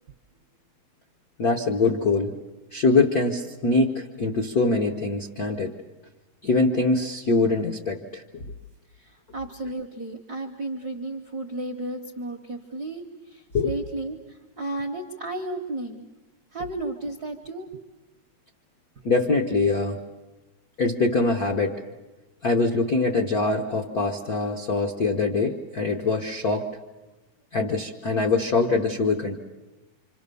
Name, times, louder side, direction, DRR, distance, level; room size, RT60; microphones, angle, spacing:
voice 1, 1.4-2.3 2.7-5.7 6.4-8.4 13.5-13.7 19.0-20.0 20.8-21.8 22.4-26.7 27.5-29.4, left 3 dB, 75° left, 3 dB, 0.8 m, -23 dB
voice 2, 8.9-16.1 16.5-17.7, right 2 dB, 65° right, 3 dB, 1.0 m, -33 dB
26.5 x 26.5 x 6.9 m, 1.1 s
omnidirectional pair, 3.4 m